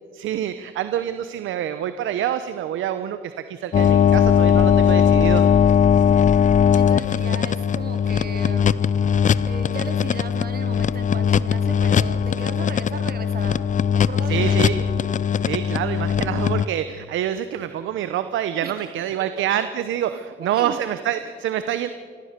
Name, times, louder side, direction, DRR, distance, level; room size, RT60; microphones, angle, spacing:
voice 1, 0.1-5.4 14.3-14.9 15.4-21.9, right 10 dB, 80° right, 11 dB, 0.8 m, -26 dB
sound 1, 3.7-16.7, left 8 dB, 40° left, 0.6 m, -19 dB
voice 2, 6.7-8.8 9.4-14.8 18.6-18.8 19.4-19.5 20.4-20.8, right 5 dB, 50° right, 7 dB, 2.4 m, -36 dB
30.0 x 14.0 x 6.7 m, 2.2 s
cardioid pair, 90°, 20 cm